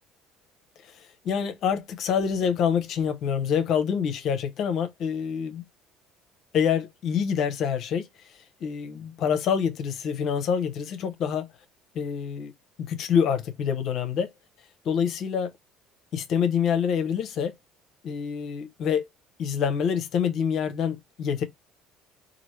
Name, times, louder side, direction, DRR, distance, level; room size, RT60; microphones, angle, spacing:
voice 1, 1.2-5.6 6.5-8.1 8.6-11.5 11.9-12.5 12.8-14.3 14.8-15.5 16.1-17.5 18.0-19.1 19.4-21.4, left 7 dB, 60° left, 0.6 m, -26 dB
2.9 x 2.5 x 3.0 m
supercardioid pair, 75°, 0 cm